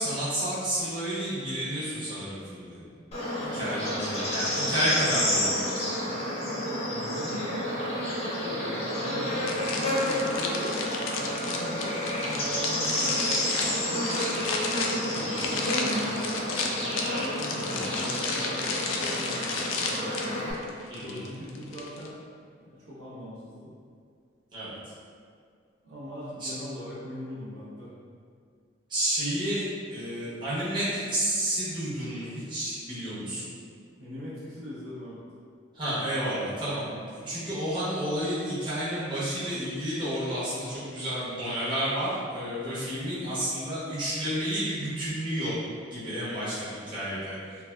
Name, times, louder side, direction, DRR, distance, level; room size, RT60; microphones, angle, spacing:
voice 1, 0.0-2.9 3.5-5.8 15.1-15.4 17.5-17.9 20.9-21.2 24.5-24.7 26.4-26.5 28.9-29.6 29.9-33.5 35.7-45.6 45.9-47.3, right 1 dB, 25° right, -11 dB, 0.7 m, -31 dB
Bird / Insect, 3.1-20.5, left 1 dB, 30° left, 0.5 m, -30 dB
voice 2, 6.6-10.8 11.1-14.5 15.0-16.2 17.1-20.1 21.0-22.2 22.6-23.7 25.8-27.9 33.0-33.3 34.0-35.2, equal, 80° right, -9 dB, 0.9 m, -41 dB
sound 1, 9.5-22.1, left 4 dB, 85° left, 0.3 m, -33 dB
3.3 x 2.3 x 2.2 m, 2.2 s
head